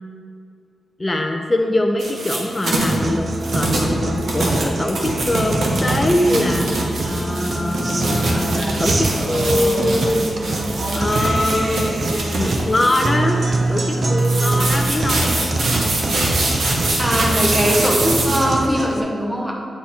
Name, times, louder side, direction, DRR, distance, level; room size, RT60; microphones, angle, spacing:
voice 1, 1.0-6.7 7.0-10.3 10.9-12.0 12.4-13.4 13.7-15.2, left 1 dB, 15° left, 3 dB, 0.4 m, -22 dB
sound 1, 2.0-3.0 3.4-13.1 14.2-18.4, right 2 dB, 65° right, 1.0 m, -23 dB
Guitar, 3.0-19.0, right 2 dB, 40° right, 0.5 m, -24 dB
voice 2, 17.0-19.5, equal, 10° right, -1 dB, 0.9 m, -20 dB
8.7 x 3.5 x 4.3 m, 2.3 s
wide cardioid pair, 150°, 0 cm